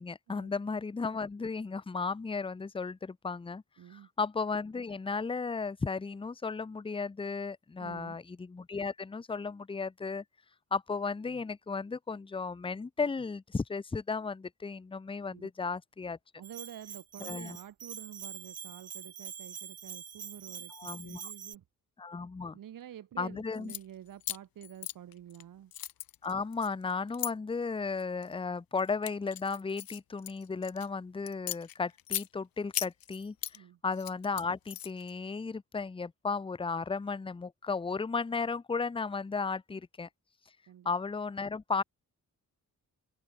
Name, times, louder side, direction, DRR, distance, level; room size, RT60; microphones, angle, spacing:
voice 1, 0.0-3.6 3.9-10.2 10.7-16.2 17.2-17.6 20.7-21.3 22.0-22.6 23.2-23.7 26.2-33.4 33.8-40.1 40.8-41.8, left 4 dB, 15° left, 0.6 m, -35 dB
voice 2, 3.8-4.1 7.8-8.2 15.3-15.5 16.4-21.6 22.5-25.7 33.5-33.8 40.7-40.9, right 11 dB, 70° right, 0.9 m, -49 dB
Bell, 16.4-21.6, right 7 dB, 50° right, 1.3 m, -45 dB
sound 1, 23.5-23.8 24.2-25.4 25.7-27.3 28.0-28.3 28.8-30.9 31.3-32.3 32.7-33.6 33.9-35.1, left 12 dB, 80° left, 0.8 m, -38 dB
open air
wide cardioid pair, 150°, 34 cm